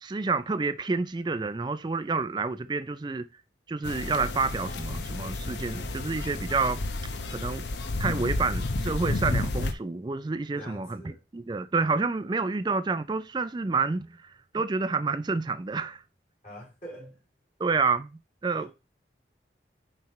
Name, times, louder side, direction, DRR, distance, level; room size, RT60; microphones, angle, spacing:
voice 1, 0.0-3.3 3.7-6.8 7.3-7.7 8.0-16.0 17.6-18.1 18.4-18.7, right 4 dB, 25° right, 0.4 m, -29 dB
sound 1, 3.8-9.7, left 2 dB, 75° left, 0.8 m, -31 dB
voice 2, 10.6-11.2 16.4-17.2 18.5-18.7, right 1 dB, 40° left, 3.6 m, -44 dB
9.3 x 3.3 x 4.3 m
head